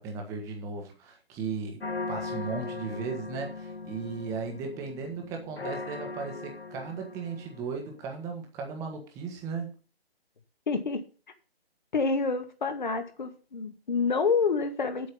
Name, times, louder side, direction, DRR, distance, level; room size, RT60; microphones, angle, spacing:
voice 1, 0.0-1.8 2.1-9.7, right 5 dB, 10° right, 1.6 m, -36 dB
sound 1, 1.8-7.9, left 3 dB, 75° left, 1.4 m, -39 dB
voice 2, 10.7-11.0 11.9-15.1, left 4 dB, 50° left, 2.2 m, -28 dB
8.5 x 8.3 x 5.5 m
figure-of-eight pair, 150°, 31 cm